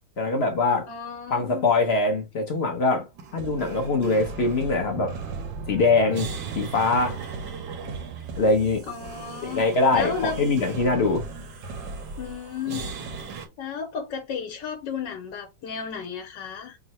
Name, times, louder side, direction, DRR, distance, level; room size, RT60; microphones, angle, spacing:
voice 1, 0.2-0.9 1.3-3.1 3.3-5.1 5.7-6.3 6.5-7.2 7.8-8.0 8.4-8.9 9.4-11.2, left 3 dB, 55° left, 0.8 m, -23 dB
voice 2, 0.9-1.7 8.9-9.7 9.9-10.4 12.2-13.0 13.6-16.8, left 6 dB, 85° left, 1.5 m, -33 dB
sound 1, 3.1-13.5, right 3 dB, 75° right, 1.3 m, -38 dB
sound 2, 4.8-9.8, right 7 dB, 90° right, 0.6 m, -39 dB
3.7 x 2.0 x 4.1 m
omnidirectional pair, 1.9 m